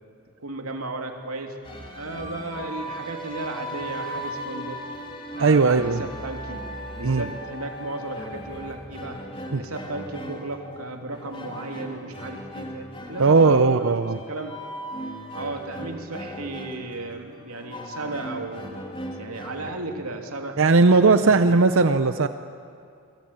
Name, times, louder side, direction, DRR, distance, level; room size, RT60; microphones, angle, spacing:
voice 1, 0.4-1.5 1.9-4.8 5.4-6.6 6.9-9.2 9.5-13.9 14.3-14.5 15.3-18.8 19.2-21.6, right 2 dB, 80° right, 3 dB, 3.1 m, -35 dB
sound 1, 1.6-19.7, equal, 25° left, 3.2 m, -37 dB
voice 2, 5.4-6.0 7.0-7.3 9.5-9.6 13.2-14.2 20.6-22.3, right 4 dB, 65° right, 10 dB, 0.7 m, -18 dB
28.5 x 22.5 x 9.0 m, 2.5 s
head